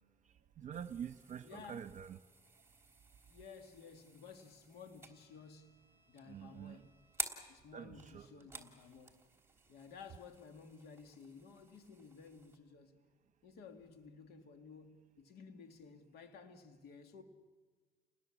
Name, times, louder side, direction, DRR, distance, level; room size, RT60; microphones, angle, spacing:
voice 1, 0.6-2.2 6.3-6.8 7.7-8.3, right 8 dB, 45° right, 1.1 m, -46 dB
sound 1, 0.7-12.6, right 3 dB, 15° right, 3.2 m, -51 dB
voice 2, 1.4-1.9 3.3-5.8 6.1-7.0 7.5-9.2 9.7-13.0 13.4-17.2, left 5 dB, 70° left, 2.4 m, -55 dB
30.0 x 20.5 x 7.4 m
cardioid pair, 110°, 17 cm